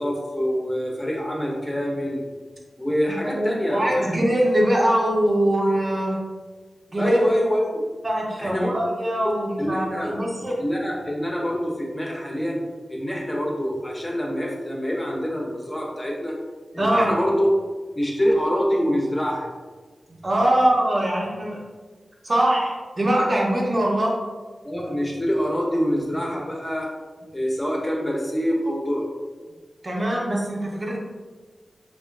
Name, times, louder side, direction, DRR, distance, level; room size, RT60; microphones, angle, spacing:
voice 1, 0.0-2.2 2.8-4.2 7.0-7.8 8.4-8.7 9.6-10.2 10.6-12.6 12.9-16.4 16.7-17.6 17.9-19.5 24.6-26.9 27.3-29.0, equal, 20° left, -2 dB, 0.5 m, -25 dB
voice 2, 3.2-6.2 6.9-7.2 8.0-10.6 16.8-17.2 20.2-21.6 22.2-24.2 29.8-31.0, right 1 dB, 40° right, -2 dB, 0.5 m, -22 dB
2.6 x 2.2 x 2.3 m, 1.4 s
wide cardioid pair, 85°, 0 cm